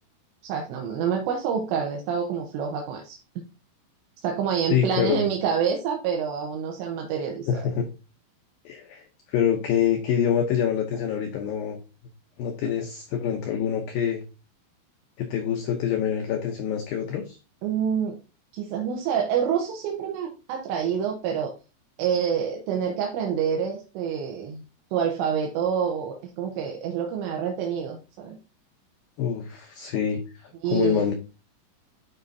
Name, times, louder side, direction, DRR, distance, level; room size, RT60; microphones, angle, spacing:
voice 1, 0.4-3.2 4.2-7.5 17.6-18.2 18.5-21.5 22.0-24.6 24.9-28.4 30.6-31.1, right 7 dB, 80° right, 1 dB, 3.1 m, -27 dB
voice 2, 4.7-5.2 7.5-7.9 8.7-11.8 12.4-14.2 15.2-17.4 29.2-31.1, left 8 dB, 85° left, 4 dB, 2.0 m, -26 dB
11.5 x 4.9 x 2.7 m, 0.31 s
omnidirectional pair, 5.4 m